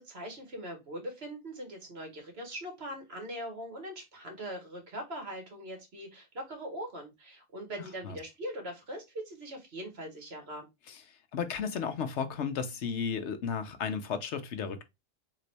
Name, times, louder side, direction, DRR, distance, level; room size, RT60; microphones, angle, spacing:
voice 1, 0.0-10.7, equal, 65° right, 2.0 m, -41 dB
voice 2, 11.3-14.8, left 6 dB, 80° left, 1.1 m, -34 dB
4.0 x 3.7 x 3.3 m
omnidirectional pair, 1.2 m